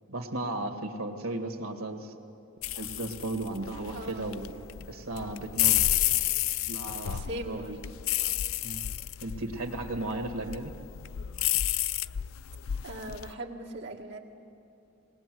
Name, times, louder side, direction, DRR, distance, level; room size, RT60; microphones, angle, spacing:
voice 1, 0.1-2.1 2.8-4.5 4.9-5.9 6.7-7.8 8.6-8.8 9.2-10.7, right 2 dB, 85° right, 5 dB, 2.0 m, -35 dB
sound 1, 2.6-13.3, left 13 dB, 75° left, 0.4 m, -31 dB
voice 2, 3.9-4.3 7.3-7.7 12.8-14.2, right 1 dB, 60° right, 0 dB, 1.9 m, -39 dB
20.0 x 19.5 x 7.8 m, 2.6 s
head